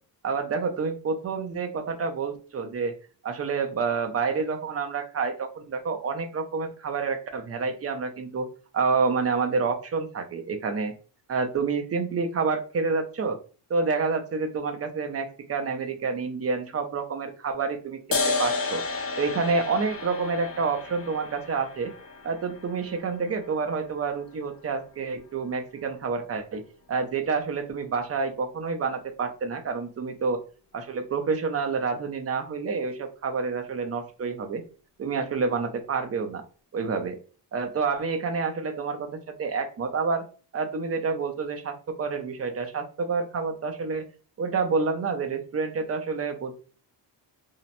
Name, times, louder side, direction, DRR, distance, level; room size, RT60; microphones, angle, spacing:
voice 1, 0.2-2.9 3.2-8.5 8.7-10.9 11.3-13.4 13.7-18.8 19.2-21.9 22.2-26.6 26.9-30.4 30.7-34.6 35.0-36.4 36.7-37.2 37.5-39.1 39.4-40.2 40.5-44.1 44.4-46.5, right 4 dB, 35° right, 5 dB, 0.5 m, -28 dB
sound 1, 18.1-25.1, left 4 dB, 30° left, 0.6 m, -33 dB
2.8 x 2.0 x 2.6 m, 0.37 s
cardioid pair, 100°, 43 cm